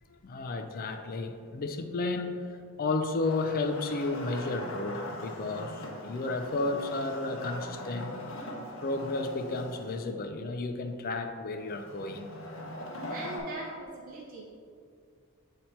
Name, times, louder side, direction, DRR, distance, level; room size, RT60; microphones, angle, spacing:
voice 1, 0.1-8.2 8.8-12.3, left 2 dB, 45° left, 6 dB, 0.4 m, -33 dB
Wood, 3.2-10.0 11.7-13.4, left 1 dB, 65° left, 0.9 m, -41 dB
voice 2, 13.1-14.4, right 2 dB, 40° right, -4 dB, 0.6 m, -40 dB
7.7 x 2.9 x 4.3 m, 2.3 s
head